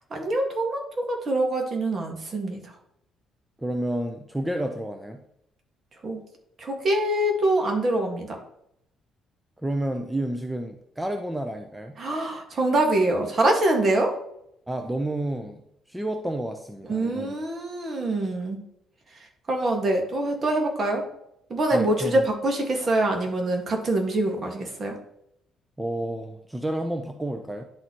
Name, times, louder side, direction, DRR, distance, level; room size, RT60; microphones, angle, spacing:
voice 1, 0.1-2.7 6.0-6.2 6.6-8.4 12.0-14.1 16.8-18.6 19.5-21.0 21.5-25.0, right 1 dB, 45° right, 2 dB, 1.8 m, -24 dB
voice 2, 3.6-5.2 9.6-12.0 14.7-15.6 15.9-17.3 21.7-22.2 25.8-27.6, right 1 dB, 10° right, 5 dB, 0.7 m, -30 dB
10.5 x 4.1 x 3.0 m, 0.77 s
supercardioid pair, 60°, 0 cm